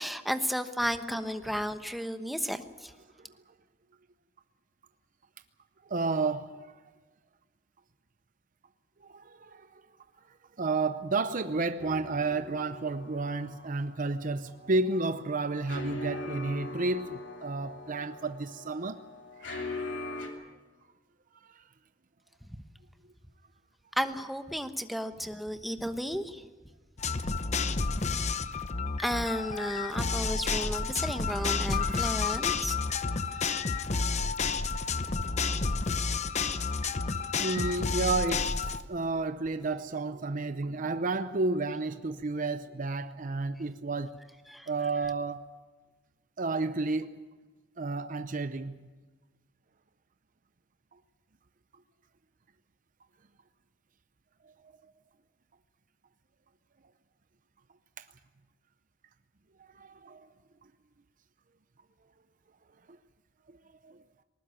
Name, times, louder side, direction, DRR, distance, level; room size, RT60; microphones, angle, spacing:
voice 1, 0.0-2.9 24.0-26.4 28.0-28.3 29.0-32.7 33.1-33.2 44.5-44.7, equal, ahead, 1.1 m, -33 dB
voice 2, 5.8-6.7 9.0-9.8 10.6-19.0 19.4-20.4 21.5-21.6 29.6-30.3 31.3-32.3 37.2-44.2 44.7-45.5 46.4-47.2 47.8-48.9 54.4-54.5 58.0-58.1 59.6-60.3 62.9-63.0 63.5-63.6 63.8-64.0, right 3 dB, 45° right, 0.7 m, -32 dB
sound 1, 11.8-20.3, left 2 dB, 80° left, 2.9 m, -42 dB
sound 2, 27.0-38.8, left 4 dB, 40° left, 0.9 m, -30 dB
20.0 x 19.0 x 9.1 m
head